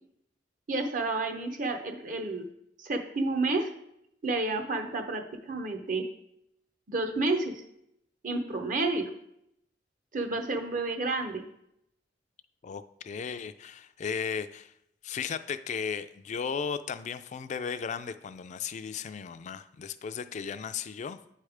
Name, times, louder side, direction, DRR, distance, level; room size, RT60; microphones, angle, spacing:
voice 1, 0.7-2.5 2.8-3.7 4.2-6.1 6.9-7.6 8.2-9.1 10.1-11.4, right 2 dB, 50° right, 5 dB, 0.8 m, -30 dB
voice 2, 12.6-14.7 15.0-21.2, left 6 dB, 40° left, 11 dB, 0.3 m, -35 dB
8.5 x 3.3 x 4.9 m, 0.77 s
head